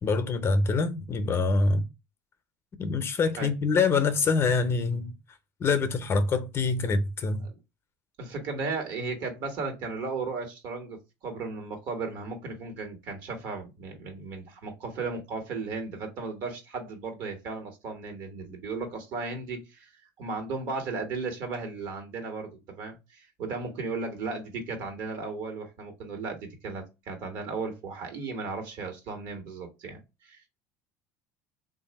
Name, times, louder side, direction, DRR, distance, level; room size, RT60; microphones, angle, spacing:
voice 1, 0.0-1.8 2.8-5.1 5.6-7.5, left 4 dB, 35° left, 0.6 m, -25 dB
voice 2, 8.2-19.9 20.2-30.4, right 4 dB, 65° right, 1.4 m, -35 dB
3.3 x 2.5 x 4.0 m
supercardioid pair, 95°, 7 cm